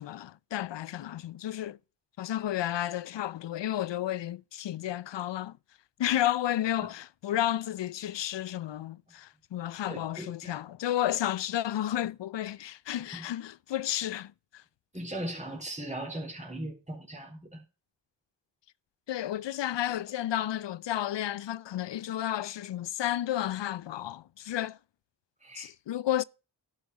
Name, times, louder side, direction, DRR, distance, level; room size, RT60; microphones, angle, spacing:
voice 1, 0.0-1.8 2.2-5.6 6.0-14.6 19.1-24.8 25.6-26.2, left 12 dB, 70° left, 0.5 m, -32 dB
voice 2, 9.9-10.6 13.1-13.3 14.9-17.6 25.4-25.7, right 1 dB, 15° right, 3.9 m, -38 dB
11.0 x 5.8 x 5.2 m
cardioid pair, 45°, 45 cm